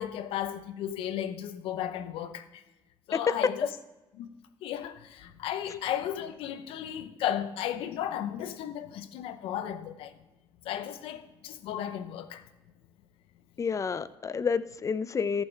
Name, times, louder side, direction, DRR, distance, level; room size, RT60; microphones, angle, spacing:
voice 1, 0.0-2.6 3.1-3.7 4.1-4.4 4.6-10.1 10.6-12.4, left 10 dB, 80° left, 0.8 m, -34 dB
voice 2, 13.6-15.4, left 6 dB, 35° left, 0.6 m, -29 dB
14.0 x 7.3 x 3.3 m
supercardioid pair, 80°, 9 cm